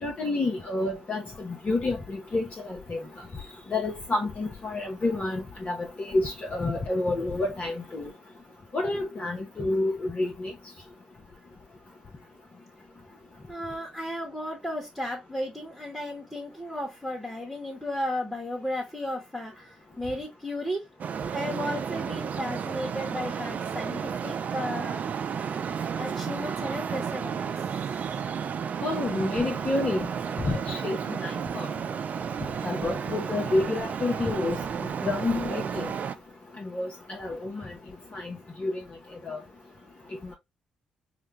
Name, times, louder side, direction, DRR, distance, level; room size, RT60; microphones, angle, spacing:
voice 1, 0.0-3.0 3.7-8.1 8.7-10.5 28.8-30.1 30.4-31.7 32.6-35.9 36.6-37.7 38.1-38.8 39.2-39.4, left 2 dB, 35° left, 0.8 m, -29 dB
voice 2, 13.5-20.8 21.3-25.0 26.0-27.5 27.9-28.2, left 1 dB, ahead, 1.2 m, -34 dB
Traffic noise roadway noise, 21.0-36.1, right 7 dB, 45° right, 0.4 m, -32 dB
4.9 x 2.2 x 3.0 m
figure-of-eight pair, 45°, 4 cm